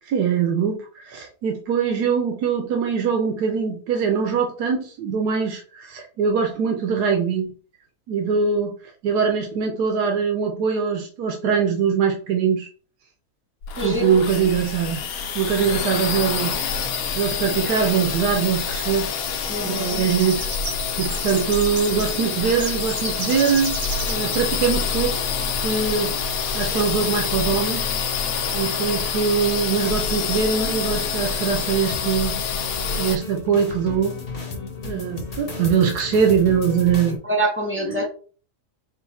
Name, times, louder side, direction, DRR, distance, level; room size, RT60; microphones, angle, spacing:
voice 1, 0.1-7.5 8.1-8.7 9.0-12.7 13.8-16.7 17.2-19.1 19.6-20.4 21.0-23.7 24.1-25.1 25.6-26.1 26.5-27.9 28.5-32.3 33.0-34.2 34.8-37.2 37.8-38.0, right 6 dB, 90° right, 2 dB, 1.3 m, -22 dB
sound 1, 13.6-33.2, left 6 dB, 70° left, 1.1 m, -26 dB
voice 2, 13.8-14.2 19.5-20.0 37.2-38.1, right 1 dB, 15° right, -1 dB, 0.5 m, -25 dB
sound 2, 19.3-19.4 19.6-24.6 24.9-25.0 25.4-25.5 26.3-26.4 26.8-27.0, right 3 dB, 50° right, 1.3 m, -35 dB
sound 3, 31.9-37.2, left 3 dB, 45° left, 1.0 m, -34 dB
3.9 x 2.5 x 4.1 m, 0.40 s
omnidirectional pair, 1.6 m